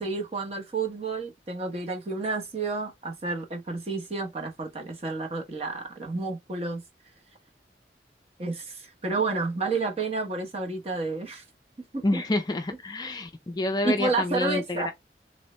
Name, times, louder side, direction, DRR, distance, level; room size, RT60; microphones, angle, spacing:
voice 1, 0.0-6.8 8.4-11.4 11.9-12.2 13.8-14.9, right 3 dB, 35° right, 0.9 m, -30 dB
voice 2, 12.0-14.9, left 2 dB, 25° left, 0.4 m, -28 dB
3.1 x 2.6 x 3.1 m
head